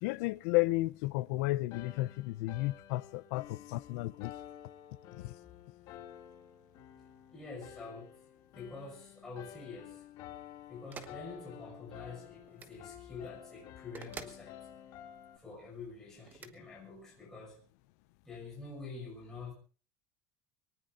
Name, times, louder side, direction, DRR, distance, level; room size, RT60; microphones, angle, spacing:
voice 1, 0.0-4.3 5.2-5.3, left 20 dB, 75° left, 0.6 m, -33 dB
sound 1, 1.7-15.4, left 11 dB, 45° left, 2.6 m, -51 dB
voice 2, 7.3-8.2 8.5-10.0 10.7-14.6 15.4-17.6 18.2-19.5, left 4 dB, 5° left, 6.1 m, -47 dB
sound 2, 10.9-11.2 12.5-12.8 13.9-14.4 16.3-16.5, right 5 dB, 20° right, 1.2 m, -47 dB
24.5 x 19.0 x 2.6 m
cardioid pair, 175°, 9 cm